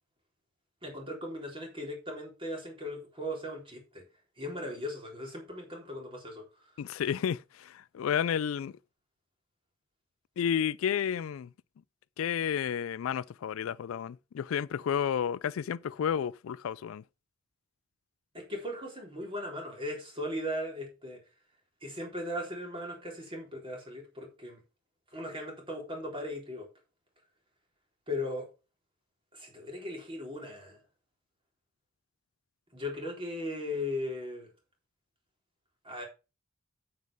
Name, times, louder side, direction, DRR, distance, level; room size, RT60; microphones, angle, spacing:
voice 1, 0.8-4.0 4.4-6.4 18.5-21.2 21.8-24.6 25.1-26.6 28.1-28.5 29.3-30.8 32.7-34.5 35.8-36.0, left 1 dB, 25° right, 3.8 m, -38 dB
voice 2, 6.8-8.7 10.4-11.5 12.2-17.0, left 8 dB, 70° left, 0.3 m, -31 dB
9.3 x 7.9 x 3.5 m
head